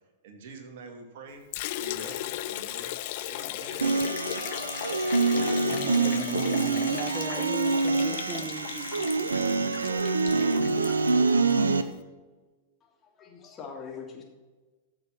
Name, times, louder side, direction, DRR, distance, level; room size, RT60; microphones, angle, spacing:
voice 1, 0.2-1.4 1.8-4.0, right 4 dB, 55° right, 4 dB, 2.5 m, -46 dB
Liquid, 1.5-11.6, left 14 dB, 50° left, 0.7 m, -37 dB
sound 1, 3.8-11.8, right 3 dB, 80° right, 0.8 m, -26 dB
voice 2, 5.7-10.1, right 3 dB, 20° right, 6 dB, 1.1 m, -38 dB
voice 3, 12.8-14.2, left 6 dB, 30° left, 0 dB, 3.0 m, -43 dB
14.0 x 6.9 x 5.8 m, 1.3 s
figure-of-eight pair, 95°, 0 cm